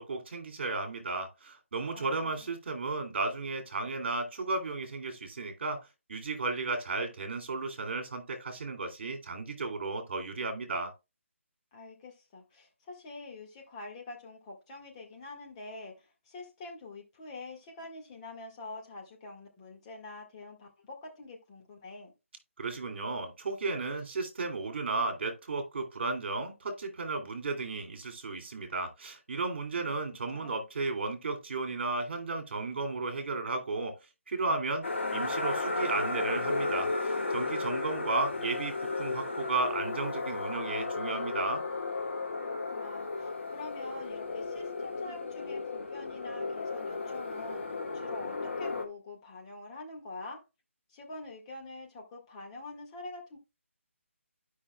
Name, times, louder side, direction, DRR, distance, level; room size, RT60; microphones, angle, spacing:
voice 1, 0.0-5.8 6.1-10.9 22.6-34.0 34.3-34.9 35.1-41.6, right 3 dB, 50° right, 2.4 m, -34 dB
voice 2, 1.9-2.5 11.7-22.1 30.3-30.6 42.4-50.4 50.9-53.4, left 2 dB, 25° left, 1.6 m, -46 dB
sound 1, 34.8-48.8, left 3 dB, 60° left, 1.6 m, -34 dB
12.5 x 5.3 x 2.2 m
figure-of-eight pair, 160°, 7 cm